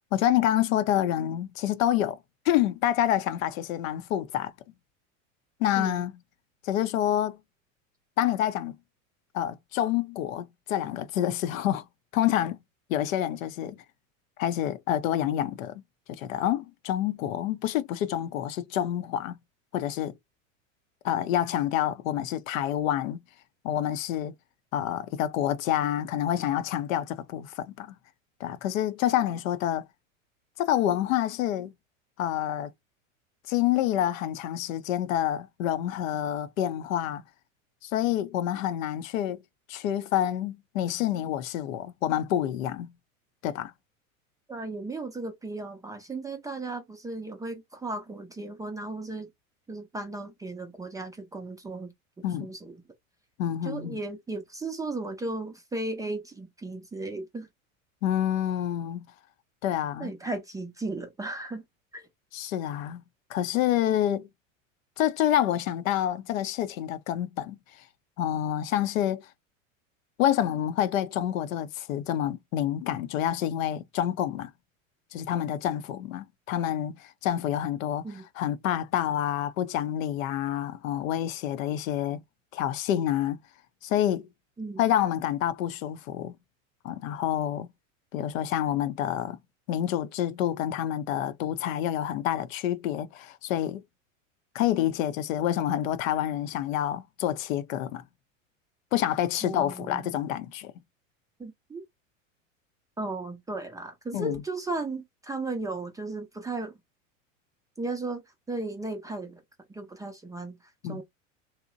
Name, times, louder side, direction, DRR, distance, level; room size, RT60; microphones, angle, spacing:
voice 1, 0.1-2.2 2.5-4.5 5.6-6.1 6.6-7.4 8.2-8.8 9.3-11.8 12.1-12.6 12.9-13.8 14.4-15.8 16.1-19.4 19.7-20.1 21.0-23.2 23.6-24.3 24.7-27.9 28.4-29.8 30.6-31.7 32.2-32.7 33.5-37.2 37.8-39.4 39.7-42.9 43.4-43.7 52.2-52.5 53.4-54.0 58.0-59.1 59.6-60.1 62.3-63.0 63.3-64.3 65.0-67.6 68.2-69.2 70.2-74.5 75.1-78.0 78.4-82.2 82.5-83.4 83.8-84.3 84.8-86.3 86.8-87.7 88.1-89.4 89.7-93.8 94.5-98.0 98.9-100.7 104.1-104.4 110.8-111.0, left 11 dB, 80° left, 0.5 m, -28 dB
voice 2, 44.5-49.3 49.7-52.8 53.6-57.5 60.0-61.6 61.9-62.1 78.0-78.2 84.6-84.8 99.4-100.1 101.4-101.8 103.0-106.7 107.8-109.4 109.7-111.0, right 2 dB, 10° right, 0.4 m, -35 dB
2.7 x 2.0 x 2.5 m
hypercardioid pair, 100°, 40 cm